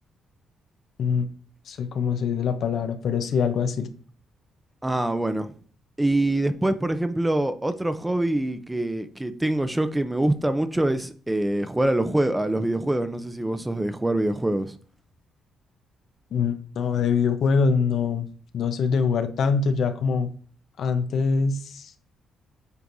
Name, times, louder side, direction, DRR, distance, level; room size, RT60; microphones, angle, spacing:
voice 1, 1.7-3.9 16.3-18.3 18.5-20.3 20.8-21.9, left 5 dB, 65° left, 0.8 m, -24 dB
voice 2, 4.8-5.5 6.0-14.7, right 1 dB, 10° right, 0.6 m, -24 dB
8.2 x 4.5 x 2.6 m
cardioid pair, 90°, 0 cm